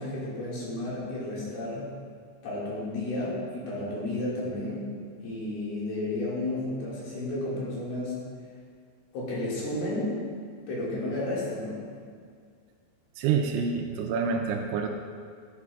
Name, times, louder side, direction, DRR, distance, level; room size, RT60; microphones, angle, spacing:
voice 1, 0.0-1.9 2.4-4.9 5.2-8.3 9.1-10.2 10.7-11.9, left 1 dB, 60° left, -7 dB, 3.4 m, -32 dB
voice 2, 13.2-14.9, right 6 dB, 85° right, 3 dB, 2.8 m, -27 dB
11.0 x 9.9 x 2.4 m, 2.1 s
omnidirectional pair, 5.6 m